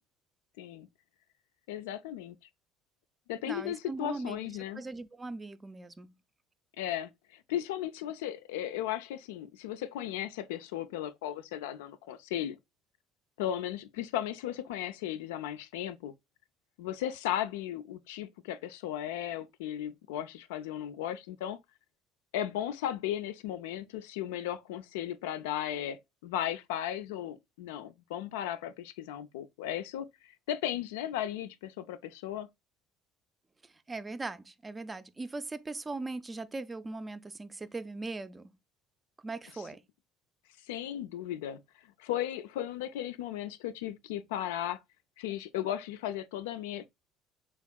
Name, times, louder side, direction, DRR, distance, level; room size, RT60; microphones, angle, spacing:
voice 1, 1.7-2.4 3.3-4.8 6.8-12.6 13.4-16.1 16.8-21.6 22.3-30.1 30.5-32.5 40.7-41.6 42.0-44.8 45.2-46.9, left 11 dB, 85° left, 0.3 m, -36 dB
voice 2, 3.5-4.4 4.7-6.1 33.9-38.5 39.2-39.8, right 3 dB, 20° right, 0.4 m, -39 dB
3.5 x 3.4 x 2.2 m
supercardioid pair, 75°, 0 cm